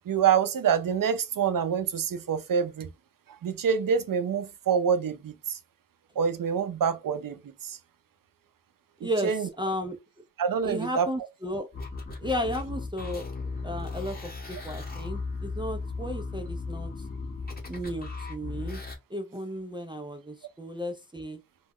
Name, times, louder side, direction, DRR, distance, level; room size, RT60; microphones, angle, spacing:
voice 1, 0.1-2.9 3.4-5.6 6.2-7.8 9.0-9.5 10.4-11.1, right 7 dB, 70° right, 0.5 m, -26 dB
voice 2, 9.0-10.0 10.6-11.7 12.2-13.2 13.6-16.9 17.7-18.8 19.1-21.4, equal, 15° right, 0.4 m, -34 dB
sound 1, 11.7-19.0, left 3 dB, 25° left, 1.0 m, -36 dB
2.3 x 2.0 x 3.5 m
wide cardioid pair, 65°, 34 cm